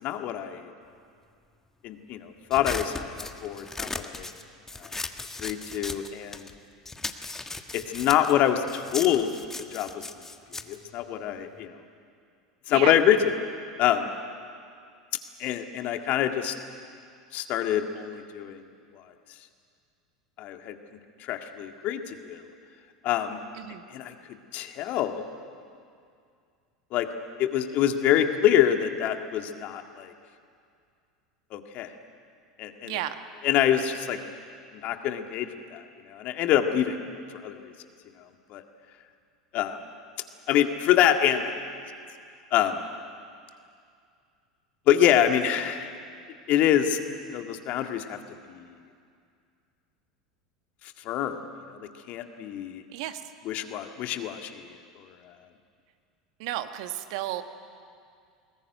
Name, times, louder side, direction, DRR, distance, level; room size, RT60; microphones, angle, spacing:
voice 1, 0.0-0.7 1.8-4.3 4.8-4.9 5.4-6.5 7.7-9.3 9.6-10.0 10.7-11.7 12.7-13.3 13.8-14.1 15.4-16.5 17.3-18.6 20.4-20.8 21.2-22.4 23.0-23.4 23.9-24.1 24.5-25.2 26.9-27.1 27.4-30.1 31.5-31.9 32.6-33.0 33.4-34.2 34.7-37.0 37.4-37.6 38.5-38.6 39.5-39.8 40.5-41.5 42.5-42.8 44.9-45.9 46.5-47.0 47.3-48.2 48.5-48.7 51.1-51.4 52.1-52.8 53.5-54.6, left 10 dB, 50° left, 6 dB, 1.9 m, -25 dB
sound 1, 2.5-6.6 6.8-11.7, left 3 dB, 15° left, 1.5 m, -37 dB
voice 2, 32.8-33.2 52.9-53.2 56.4-57.4, right 14 dB, 60° right, 9 dB, 1.4 m, -32 dB
21.5 x 19.5 x 9.4 m, 2.3 s
figure-of-eight pair, 80°, 3 cm